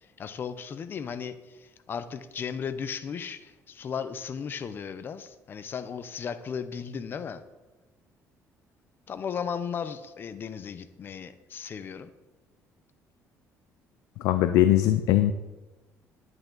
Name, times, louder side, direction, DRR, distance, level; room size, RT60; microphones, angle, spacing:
voice 1, 0.2-7.4 9.1-12.1, left 7 dB, 40° left, 11 dB, 0.7 m, -36 dB
voice 2, 14.2-15.3, left 13 dB, 90° left, 10 dB, 0.5 m, -21 dB
10.5 x 9.1 x 3.9 m, 1.1 s
cardioid pair, 120°, 6 cm